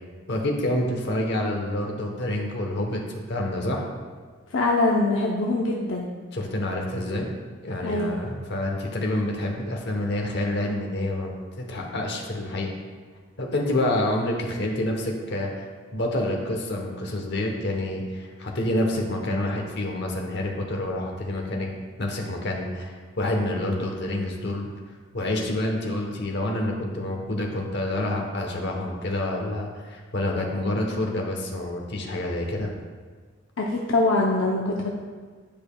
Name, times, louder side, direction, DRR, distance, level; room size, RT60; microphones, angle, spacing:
voice 1, 0.3-3.0 3.3-3.8 6.3-7.3 7.6-12.7 13.4-15.7 15.9-24.7 25.1-32.7, left 1 dB, 60° left, 1 dB, 1.0 m, -28 dB
voice 2, 4.5-6.1 7.8-8.2 33.6-34.9, left 2 dB, 75° left, -2 dB, 0.7 m, -23 dB
10.5 x 5.1 x 2.3 m, 1.5 s
head